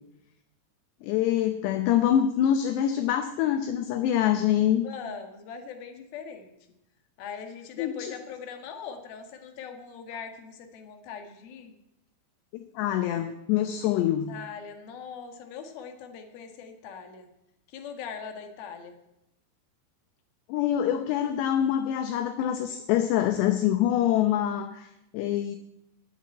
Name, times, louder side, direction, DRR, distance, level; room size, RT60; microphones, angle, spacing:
voice 1, 1.0-4.9 7.8-8.1 12.5-14.3 20.5-25.6, left 11 dB, 75° left, 7 dB, 2.7 m, -25 dB
voice 2, 4.8-6.6 7.2-11.7 14.3-17.3 17.7-19.0, left 6 dB, 60° left, 6 dB, 3.0 m, -41 dB
16.5 x 7.3 x 9.7 m, 0.86 s
omnidirectional pair, 5.6 m